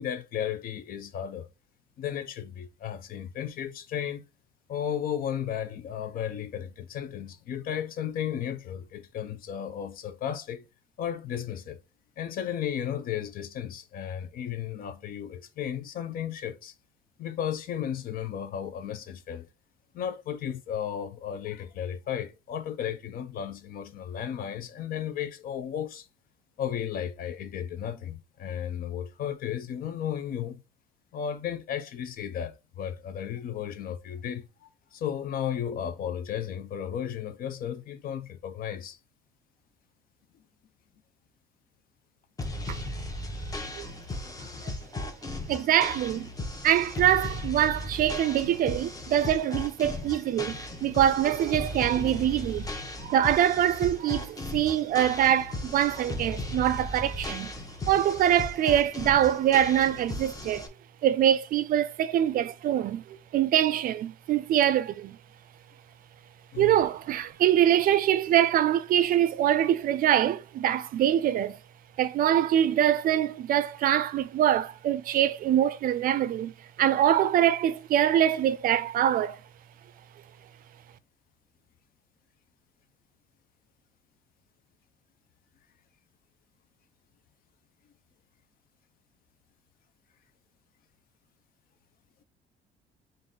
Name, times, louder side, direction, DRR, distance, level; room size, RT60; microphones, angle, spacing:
voice 1, 0.0-1.5 2.0-4.2 4.7-10.6 11.0-11.8 12.2-16.7 17.2-19.5 19.9-26.1 26.6-30.6 31.1-39.0 66.5-66.8, left 9 dB, 60° left, 0.6 m, -34 dB
sound 1, 42.4-60.7, left 1 dB, 20° left, 0.8 m, -36 dB
voice 2, 45.5-46.3 46.6-52.7 53.0-57.5 57.9-60.7 61.0-65.2 66.6-71.6 72.0-76.5 76.8-79.4, right 11 dB, 60° right, 0.4 m, -24 dB
3.8 x 2.6 x 3.7 m
cardioid pair, 110°, 17 cm